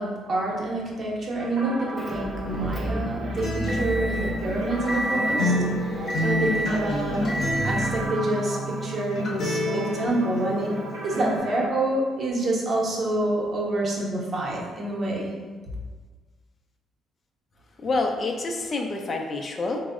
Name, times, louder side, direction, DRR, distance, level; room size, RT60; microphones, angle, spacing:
voice 1, 0.0-7.4 7.6-15.3, right 1 dB, 50° right, -3 dB, 0.7 m, -27 dB
sound 1, 1.4-11.7, right 2 dB, 85° right, 0.6 m, -37 dB
Motor vehicle (road) / Engine, 2.0-8.1, equal, 10° left, 0.7 m, -30 dB
Acoustic guitar, 3.4-11.4, equal, 60° left, 0.8 m, -29 dB
voice 2, 17.8-19.8, left 3 dB, 45° left, 2 dB, 0.4 m, -27 dB
3.2 x 2.0 x 2.4 m, 1.4 s
hypercardioid pair, 50°, 0 cm